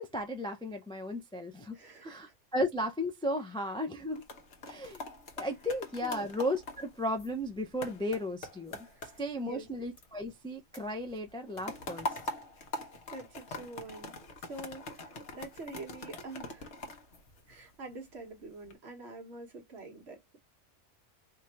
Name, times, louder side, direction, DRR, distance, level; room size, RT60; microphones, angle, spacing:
voice 1, 0.0-2.3 2.5-4.2 4.7-5.0 5.4-8.9 9.2-12.1, left 1 dB, 5° left, 0.3 m, -35 dB
voice 2, 1.7-2.3 6.0-6.3 8.8-9.7 13.1-14.1 14.4-16.7 17.5-20.4, right 2 dB, 60° right, 1.5 m, -46 dB
sound 1, 4.0-10.5 10.7-17.9 18.4-18.7, left 2 dB, 65° left, 1.2 m, -43 dB
3.5 x 2.6 x 4.3 m
omnidirectional pair, 1.3 m